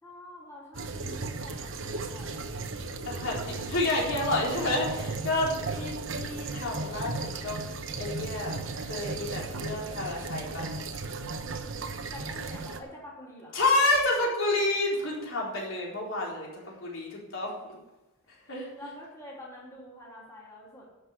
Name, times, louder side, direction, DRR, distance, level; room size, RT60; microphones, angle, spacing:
voice 1, 0.0-2.5 12.1-13.6 18.8-20.9, left 1 dB, 15° left, -5 dB, 3.3 m, -47 dB
sound 1, 0.7-12.8, right 3 dB, 65° right, 1.1 m, -36 dB
voice 2, 3.1-7.6 8.0-10.7 13.5-17.7 18.5-18.7, left 2 dB, 65° left, -3 dB, 4.1 m, -29 dB
11.5 x 6.7 x 8.8 m, 1.0 s
head